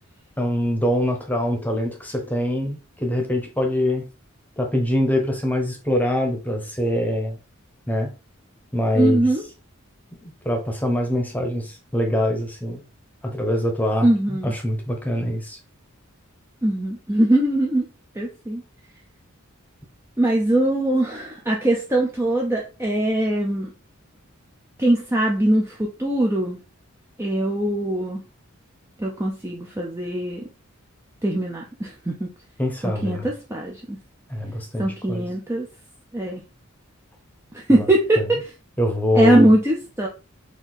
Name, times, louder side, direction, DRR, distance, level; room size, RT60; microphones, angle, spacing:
voice 1, 0.4-4.1 4.6-7.4 7.9-8.1 8.7-9.2 10.2-12.8 13.2-15.6 32.6-33.3 34.3-35.2 37.7-37.8 38.2-38.3 38.8-39.5, left 1 dB, 10° left, 2 dB, 1.0 m, -24 dB
voice 2, 8.9-9.4 14.0-14.5 16.6-17.9 18.1-18.6 20.2-23.7 24.8-26.6 27.2-28.2 29.0-30.4 31.2-32.3 32.8-34.0 34.8-35.7 36.1-36.4 37.5-38.5 39.1-40.1, right 1 dB, 10° right, -1 dB, 0.6 m, -21 dB
4.5 x 2.8 x 4.0 m, 0.32 s
head